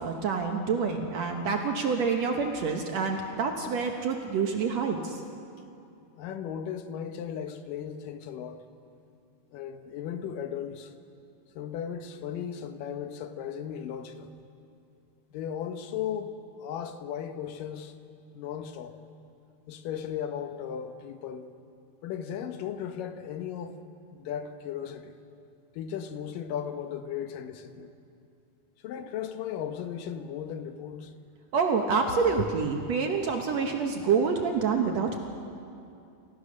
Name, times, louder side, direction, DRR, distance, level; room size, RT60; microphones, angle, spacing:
voice 1, 0.0-5.2 31.5-35.2, right 5 dB, 65° right, 1.9 m, -27 dB
voice 2, 6.2-8.6 9.5-10.9 11.6-14.4 15.3-17.9 18.3-19.0 19.7-21.5 22.0-23.8 24.1-25.2 25.8-27.9 28.8-31.1, left 8 dB, 75° left, 2.5 m, -36 dB
28.0 x 15.0 x 6.4 m
omnidirectional pair, 4.1 m